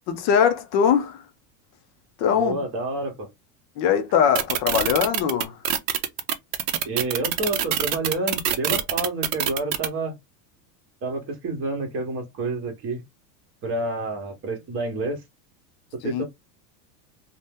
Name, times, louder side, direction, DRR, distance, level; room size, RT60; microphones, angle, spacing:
voice 1, 0.2-1.2 2.2-2.5 3.8-5.6 16.1-16.2, left 8 dB, 35° left, 0.4 m, -21 dB
voice 2, 2.3-3.3 6.8-10.1 11.0-13.0 13.6-15.2 16.0-16.2, right 2 dB, 25° right, 1.0 m, -29 dB
sound 1, 4.3-9.9, right 10 dB, 55° right, 0.6 m, -24 dB
2.6 x 2.1 x 3.5 m
supercardioid pair, 155°, 48 cm